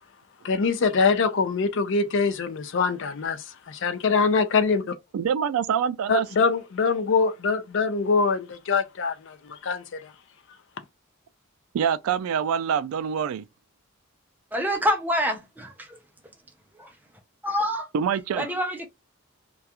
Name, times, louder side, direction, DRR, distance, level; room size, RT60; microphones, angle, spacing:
voice 1, 0.4-4.9 6.1-10.1, left 4 dB, 60° left, 0.4 m, -24 dB
voice 2, 5.1-6.3 11.7-13.4 17.9-18.5, right 7 dB, 85° right, 0.3 m, -25 dB
voice 3, 14.5-16.0 16.7-16.9 17.4-17.9 18.3-18.9, equal, 10° right, 0.5 m, -26 dB
2.3 x 2.3 x 2.8 m
head